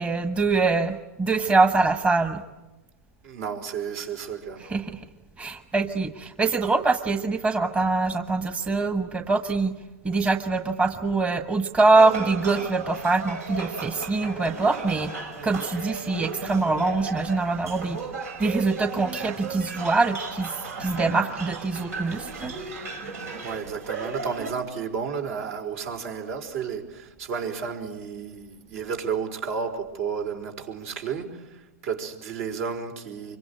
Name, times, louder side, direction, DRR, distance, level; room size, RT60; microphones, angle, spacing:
voice 1, 0.0-2.4 4.6-5.0 5.4-9.7 10.0-15.1 15.4-18.0 18.4-22.5, right 3 dB, 15° right, 7 dB, 1.3 m, -24 dB
voice 2, 3.2-4.7 23.4-33.4, right 6 dB, 65° right, 5 dB, 4.9 m, -32 dB
sound 1, 11.9-24.5, right 4 dB, 85° right, 5.3 m, -35 dB
26.0 x 23.5 x 8.9 m, 1.1 s
hypercardioid pair, 120°, 8 cm